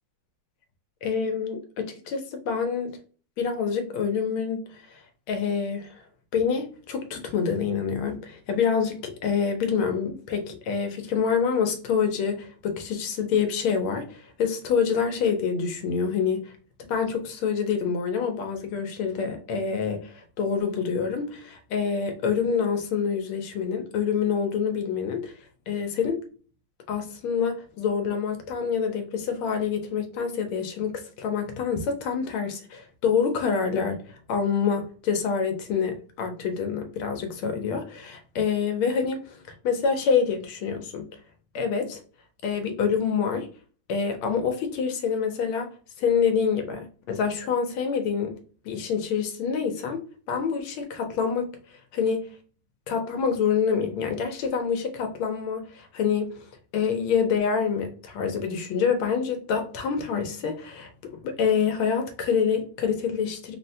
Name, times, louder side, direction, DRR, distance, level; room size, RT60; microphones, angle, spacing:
voice 1, 1.0-3.0 3.4-5.0 5.3-6.0 6.3-16.4 16.8-25.3 25.7-26.2 26.9-34.0 34.3-39.4 39.6-41.1 41.5-42.0 42.4-43.5 43.9-45.7 46.0-48.3 48.6-50.0 50.3-51.5 51.9-52.2 52.9-56.5 56.7-63.6, left 6 dB, 90° left, 1.5 m, -26 dB
3.9 x 2.1 x 2.6 m
omnidirectional pair, 2.2 m